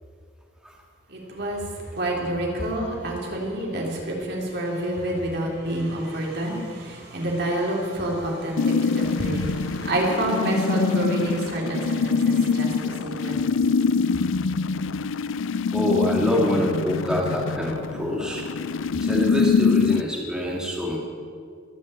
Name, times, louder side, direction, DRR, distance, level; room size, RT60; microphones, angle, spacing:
voice 1, 1.1-13.5, right 1 dB, 55° right, -2 dB, 3.5 m, -28 dB
sound 1, 8.6-20.0, left 5 dB, 80° left, 0.4 m, -24 dB
voice 2, 15.7-18.4 19.0-21.0, equal, 5° right, -3 dB, 2.0 m, -25 dB
21.5 x 7.5 x 8.7 m, 2.3 s
head